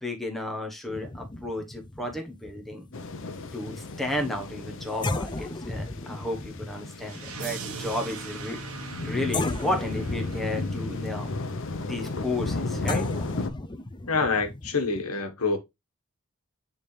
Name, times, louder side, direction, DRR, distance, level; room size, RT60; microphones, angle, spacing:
voice 1, 0.0-2.8 3.5-8.6 9.0-11.3 11.8-13.1, left 1 dB, ahead, 1.1 m, -33 dB
sound 1, 0.9-4.1 4.5-4.6 5.0-9.0 9.3-15.0, left 2 dB, 20° left, 0.5 m, -36 dB
sound 2, 2.9-13.5, left 2 dB, 60° left, 0.8 m, -34 dB
sound 3, 7.0-11.9, right 4 dB, 75° right, 1.2 m, -40 dB
voice 2, 14.1-15.6, left 4 dB, 85° left, 1.4 m, -26 dB
9.3 x 3.6 x 3.3 m
head